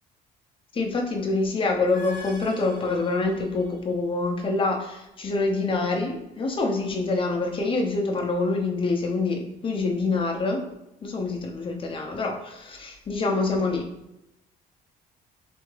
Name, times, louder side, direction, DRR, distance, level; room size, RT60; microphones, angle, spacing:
voice 1, 0.7-10.6 11.0-13.9, left 3 dB, 30° left, 1 dB, 0.7 m, -26 dB
sound 1, 1.7-4.0, left 2 dB, 20° right, 1.4 m, -45 dB
3.4 x 3.4 x 3.3 m, 0.89 s
cardioid pair, 110°, 17 cm